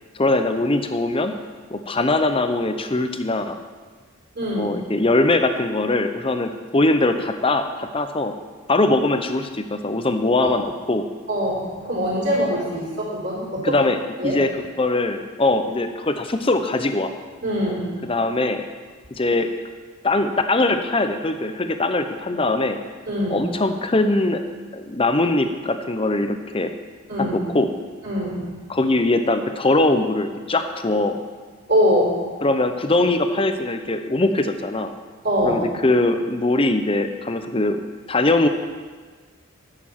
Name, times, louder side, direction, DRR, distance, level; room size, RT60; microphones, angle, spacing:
voice 1, 0.1-1.4 1.7-3.6 4.5-8.3 8.7-11.1 13.6-14.0 14.2-14.5 14.8-17.1 18.0-18.6 19.1-19.5 20.0-22.8 23.3-24.4 24.7-26.7 27.2-27.7 28.7-31.2 32.4-34.9 35.4-37.8 38.1-38.5, left 2 dB, 25° left, 8 dB, 0.7 m, -21 dB
voice 2, 4.3-4.7 10.4-10.5 11.3-13.8 14.2-14.4 17.4-17.9 23.1-23.5 27.1-27.4 28.0-28.4 31.7-32.1 35.2-35.6, equal, 50° right, -6 dB, 4.0 m, -23 dB
10.5 x 6.8 x 7.3 m, 1.5 s
head